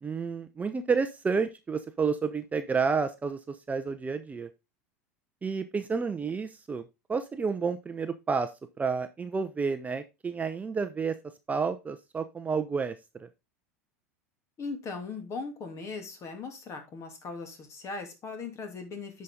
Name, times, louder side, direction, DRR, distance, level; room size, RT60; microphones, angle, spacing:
voice 1, 0.0-4.5 5.4-6.8 7.1-8.5 8.8-11.1 11.5-13.3, right 5 dB, 20° right, 9 dB, 0.7 m, -30 dB
voice 2, 14.6-19.2, left 4 dB, 35° left, 6 dB, 2.6 m, -39 dB
9.6 x 5.4 x 3.7 m, 0.24 s
hypercardioid pair, 85°, 8 cm